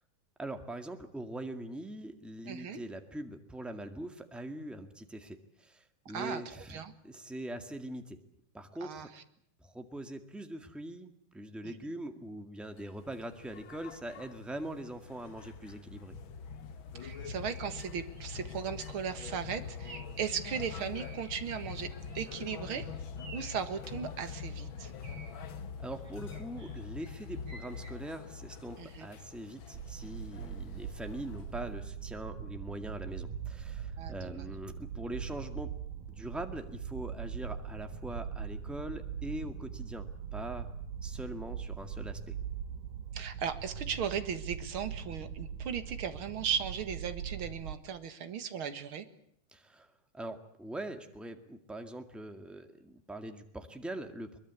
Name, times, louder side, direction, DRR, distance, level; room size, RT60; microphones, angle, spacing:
voice 1, 0.4-8.2 8.5-9.1 9.6-16.1 25.4-25.5 25.8-35.7 36.1-40.7 41.0-42.3 49.5-49.9 50.1-54.4, right 1 dB, ahead, 6 dB, 1.1 m, -42 dB
voice 2, 2.5-2.8 6.1-6.9 8.8-9.2 11.6-11.7 16.9-22.9 23.3-24.9 28.8-29.1 34.0-34.5 43.1-49.1, right 7 dB, 50° right, 10 dB, 2.1 m, -37 dB
sound 1, 12.7-31.9, left 5 dB, 55° left, 1.6 m, -44 dB
sound 2, 17.1-17.7 18.1-18.4 18.8-19.1 19.8-20.2 20.6-22.4 22.6-22.7 23.2-23.7 24.6-25.3 26.0-27.9, right 3 dB, 30° right, 4.6 m, -52 dB
sound 3, 29.7-47.7, right 7 dB, 75° right, 3.0 m, -41 dB
23.0 x 22.0 x 8.4 m, 0.68 s
omnidirectional pair, 3.7 m